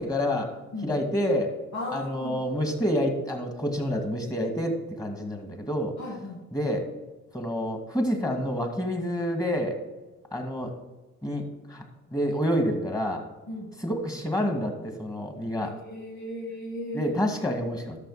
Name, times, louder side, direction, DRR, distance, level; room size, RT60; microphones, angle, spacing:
voice 1, 0.0-0.5 0.8-1.5 1.9-5.9 6.5-6.9 7.3-9.8 10.3-10.7 11.2-11.8 12.1-13.2 13.8-15.7 16.9-18.0, equal, 10° left, 3 dB, 2.3 m, -28 dB
voice 2, 1.7-2.4 6.0-6.4 13.5-13.7 15.6-17.1, left 1 dB, 65° left, -2 dB, 2.0 m, -36 dB
11.5 x 6.7 x 5.0 m, 1.2 s
cardioid pair, 90°, 30 cm